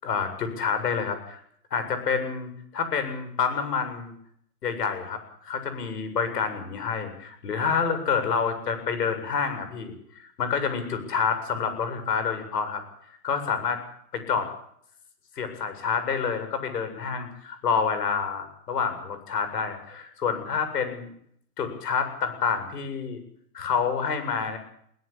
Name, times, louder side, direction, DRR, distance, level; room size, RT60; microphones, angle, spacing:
voice 1, 0.0-1.4 1.7-4.1 4.6-9.9 10.2-12.8 13.2-13.8 14.3-14.5 15.4-21.1 21.6-23.2 23.5-24.6, left 6 dB, 80° left, 9 dB, 7.6 m, -28 dB
21.5 x 17.5 x 8.6 m, 0.68 s
hypercardioid pair, 135°, 47 cm